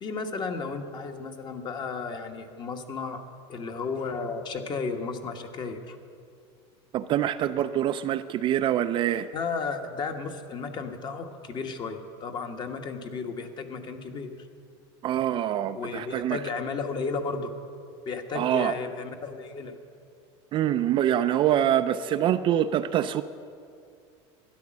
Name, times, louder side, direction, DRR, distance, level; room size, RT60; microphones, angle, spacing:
voice 1, 0.0-3.2 3.5-6.0 9.3-14.3 15.7-17.5 18.1-19.8, left 4 dB, 30° left, 6 dB, 1.2 m, -33 dB
voice 2, 6.9-9.3 15.0-16.4 18.3-18.7 20.5-23.2, right 11 dB, 35° right, 10 dB, 0.4 m, -25 dB
13.0 x 10.0 x 7.4 m, 2.3 s
supercardioid pair, 135°, 15 cm